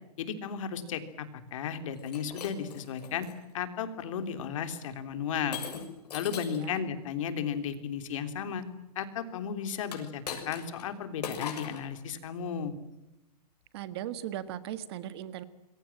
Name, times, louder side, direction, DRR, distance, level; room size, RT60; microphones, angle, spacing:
voice 1, 0.2-3.3 3.5-5.6 6.1-8.6 8.9-12.7, left 7 dB, 50° left, 9 dB, 3.4 m, -34 dB
Shatter, 2.0-3.4 4.0-4.3 5.5-6.7 9.8-10.9 11.2-11.9, left 7 dB, 80° left, 6.9 m, -40 dB
voice 2, 13.7-15.4, right 11 dB, 40° right, 13 dB, 1.6 m, -38 dB
27.0 x 23.0 x 7.5 m, 0.97 s
supercardioid pair, 175°, 20 cm